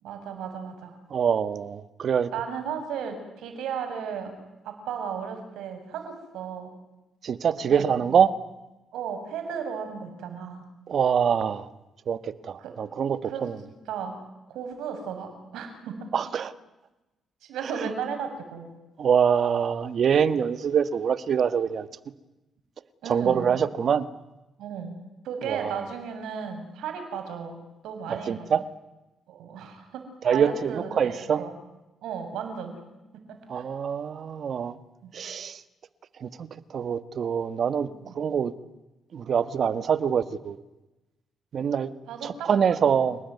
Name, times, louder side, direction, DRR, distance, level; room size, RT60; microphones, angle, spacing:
voice 1, 0.0-1.0 2.3-4.3 4.6-6.7 7.6-7.9 8.9-10.6 12.6-12.7 13.2-13.5 13.9-14.2 14.5-16.1 17.4-18.7 23.0-23.5 24.6-25.0 25.2-28.5 29.3-31.5 32.0-32.8 33.1-33.6 35.0-35.1 37.9-38.3 42.1-42.5 43.0-43.1, right 7 dB, 85° right, 6 dB, 6.9 m, -35 dB
voice 2, 1.1-2.3 7.2-8.3 10.9-11.7 12.1-13.6 16.1-16.5 17.7-17.9 19.0-21.9 23.0-24.1 25.4-25.8 28.1-28.6 30.2-31.4 33.5-34.8 35.1-35.6 36.2-37.9 38.1-38.5 39.1-40.6 41.5-41.9 42.2-43.2, right 7 dB, 55° right, 13 dB, 1.6 m, -25 dB
29.0 x 19.5 x 9.6 m, 1.0 s
cardioid pair, 90°, 0 cm